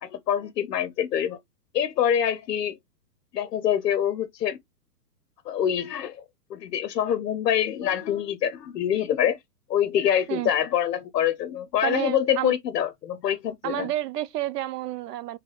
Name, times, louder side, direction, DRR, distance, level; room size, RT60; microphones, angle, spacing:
voice 1, 0.0-1.4 1.7-2.8 3.3-4.6 5.5-6.2 6.5-9.4 9.7-13.9, left 9 dB, 85° left, 0.6 m, -25 dB
voice 2, 11.8-12.5 13.6-15.4, right 14 dB, 75° right, 0.6 m, -30 dB
4.0 x 2.2 x 3.2 m
hypercardioid pair, 145°, 48 cm